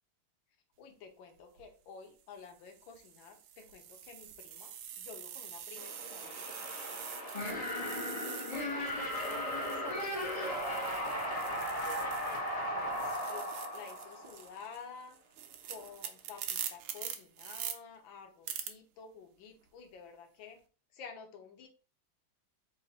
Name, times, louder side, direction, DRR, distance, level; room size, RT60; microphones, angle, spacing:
voice 1, 0.8-6.4 6.9-7.4 8.2-10.7 11.0-11.2 11.5-15.2 15.6-20.6 20.9-21.7, left 6 dB, 75° left, 5 dB, 1.5 m, -51 dB
sound 1, 1.4-1.6 2.4-12.5 12.8-17.7 18.5-18.7, right 9 dB, 80° right, 1.5 m, -45 dB
sound 2, 5.8-14.6, equal, 50° left, 0.4 m, -37 dB
4.0 x 2.5 x 4.0 m, 0.37 s
omnidirectional pair, 2.3 m